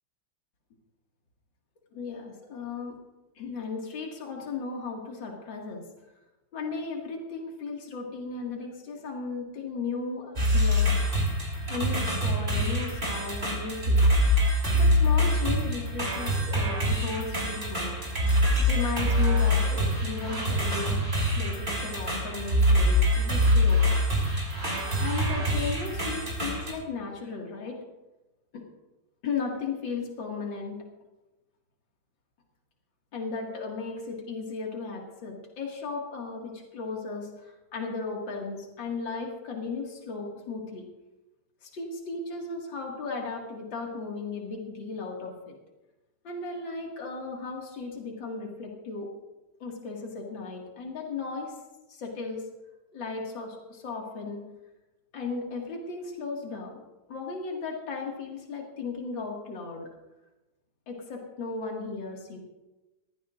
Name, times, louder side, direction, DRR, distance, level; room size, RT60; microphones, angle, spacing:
voice 1, 1.9-3.0 3.4-5.8 6.5-10.9 11.7-14.1 14.7-18.0 18.6-21.0 21.3-24.0 25.0-27.8 28.5-28.6 29.2-30.8 33.1-40.9 41.6-45.6 46.2-49.1 49.6-51.5 51.9-52.5 52.9-54.4 55.1-56.8 57.1-59.9 60.9-62.4, left 4 dB, 65° left, 0 dB, 2.8 m, -36 dB
sound 1, 10.4-26.7, equal, 30° right, 3.7 m, -25 dB
21.5 x 15.0 x 2.6 m, 1.1 s
omnidirectional pair, 2.2 m